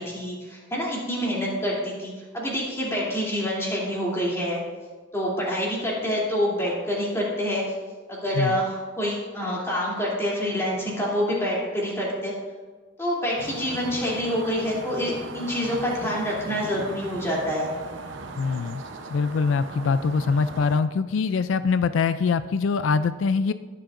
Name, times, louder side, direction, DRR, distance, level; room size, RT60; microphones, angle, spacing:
voice 1, 0.0-4.6 5.1-7.7 8.1-12.3 13.0-17.7, equal, 15° left, -5 dB, 2.9 m, -27 dB
sound 1, 13.4-20.8, right 3 dB, 80° right, 0.8 m, -38 dB
voice 2, 18.4-18.8 19.1-23.5, left 5 dB, 90° left, 13 dB, 0.4 m, -23 dB
20.5 x 7.7 x 2.6 m, 1.4 s
head